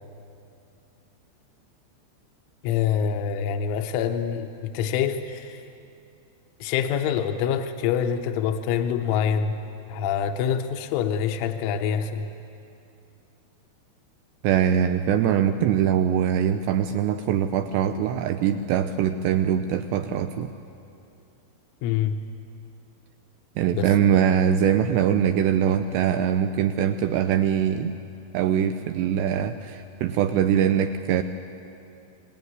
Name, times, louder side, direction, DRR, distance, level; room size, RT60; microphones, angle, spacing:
voice 1, 2.6-5.7 6.6-9.6 9.9-12.3 21.8-22.2 23.7-23.9, left 8 dB, 80° left, 6 dB, 3.3 m, -26 dB
voice 2, 14.4-20.5 23.6-27.9 28.3-31.2, right 9 dB, 80° right, 8 dB, 2.6 m, -22 dB
28.0 x 19.5 x 9.5 m, 2.7 s
omnidirectional pair, 5.7 m